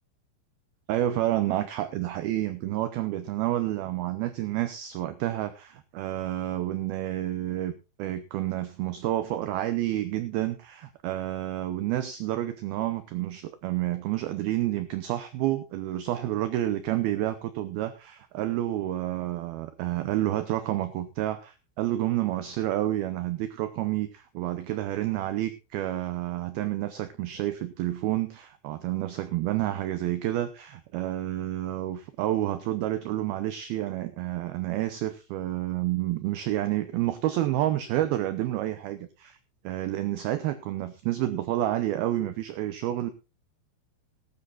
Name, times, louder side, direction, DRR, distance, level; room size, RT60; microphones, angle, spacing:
voice 1, 0.9-7.7 8.0-39.4 39.6-43.1, right 14 dB, 90° right, 11 dB, 2.1 m, -29 dB
17.5 x 12.5 x 2.4 m, 0.28 s
omnidirectional pair, 5.4 m